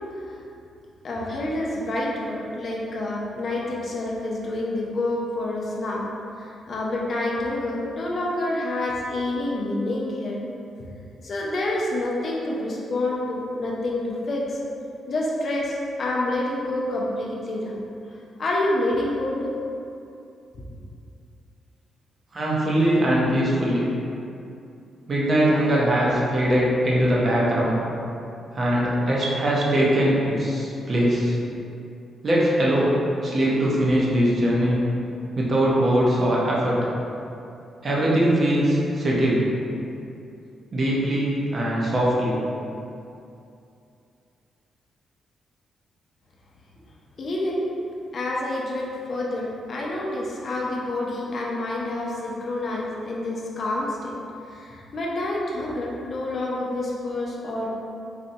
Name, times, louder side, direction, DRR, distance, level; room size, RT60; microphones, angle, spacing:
voice 1, 1.0-6.1 6.4-10.4 11.2-14.6 15.1-17.8 18.4-19.5 47.2-47.6 48.1-54.1 54.5-57.8, left 1 dB, 45° left, -4 dB, 0.5 m, -28 dB
voice 2, 22.3-23.8 25.1-27.8 28.5-31.4 32.2-33.0 33.2-34.8 35.4-36.8 37.8-39.5 40.7-42.3, right 1 dB, 35° right, -5 dB, 0.6 m, -21 dB
4.0 x 2.2 x 2.7 m, 2.6 s
cardioid pair, 140°, 0 cm